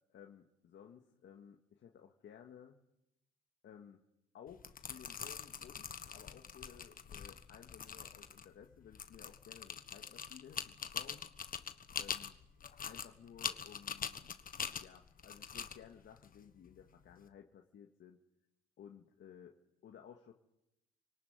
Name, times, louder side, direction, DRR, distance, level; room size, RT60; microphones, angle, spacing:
voice 1, 0.1-2.8 3.6-4.0 4.3-11.3 12.0-12.4 12.8-14.3 14.8-18.2 18.8-19.6 19.8-20.3, left 8 dB, 65° left, 2 dB, 2.1 m, -56 dB
sound 1, 4.5-17.2, left 7 dB, 45° left, 1.5 m, -44 dB
28.0 x 18.5 x 9.7 m, 0.87 s
cardioid pair, 90°, 20 cm